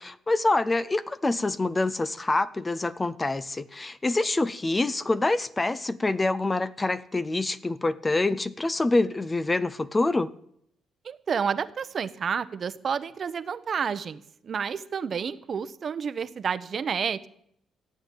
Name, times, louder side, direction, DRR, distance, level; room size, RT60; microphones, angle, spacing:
voice 1, 0.0-10.3, left 2 dB, 20° left, 15 dB, 0.7 m, -26 dB
voice 2, 11.0-17.3, right 6 dB, 50° right, 13 dB, 0.9 m, -30 dB
14.5 x 8.9 x 9.2 m, 0.72 s
cardioid pair, 90°, 0 cm